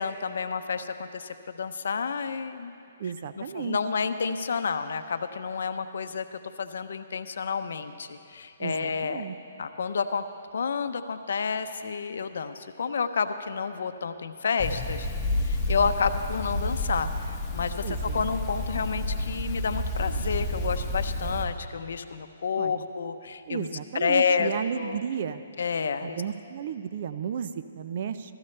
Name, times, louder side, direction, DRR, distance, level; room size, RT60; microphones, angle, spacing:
voice 1, 0.0-2.7 3.4-9.2 9.6-10.2 10.5-15.1 15.5-23.7 23.9-25.0 25.6-26.2, left 5 dB, 70° left, 10 dB, 0.6 m, -30 dB
voice 2, 3.0-3.8 8.6-9.4 17.8-18.3 22.6-22.9 23.5-25.4 26.0-28.3, right 7 dB, 50° right, 12 dB, 0.5 m, -33 dB
sound 1, 14.6-21.4, left 1 dB, 15° left, 1.3 m, -30 dB
15.0 x 13.5 x 3.3 m, 2.5 s
hypercardioid pair, 150°, 0 cm